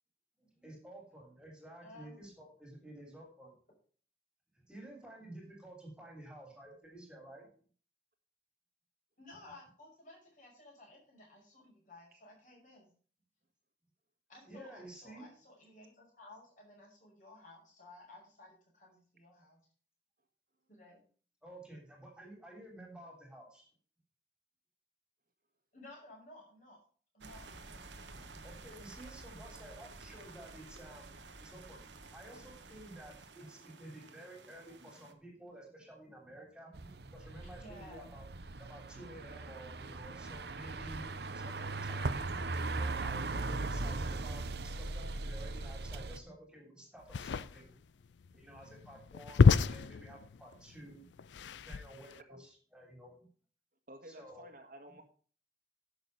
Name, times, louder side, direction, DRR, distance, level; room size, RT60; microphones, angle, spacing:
voice 1, 0.4-3.6 4.6-7.5 14.4-15.3 21.4-23.7 27.6-38.3 38.6-42.4 42.8-47.8 48.3-51.0 51.6-53.3 54.0-54.5, right 1 dB, 5° right, 0 dB, 3.3 m, -52 dB
voice 2, 1.8-2.2 9.2-12.9 14.3-19.6 20.7-21.0 25.7-26.8 27.1-27.4 37.6-38.1, left 2 dB, 45° left, -2 dB, 5.9 m, -55 dB
sound 1, 27.2-35.1, right 3 dB, 90° right, 1.4 m, -52 dB
sound 2, 36.7-46.2, right 3 dB, 65° right, 0.9 m, -39 dB
sound 3, 47.0-52.2, left 5 dB, 85° left, 0.4 m, -29 dB
voice 3, 53.9-55.0, right 1 dB, 50° right, 5 dB, 1.7 m, -52 dB
11.0 x 6.7 x 5.5 m, 0.43 s
head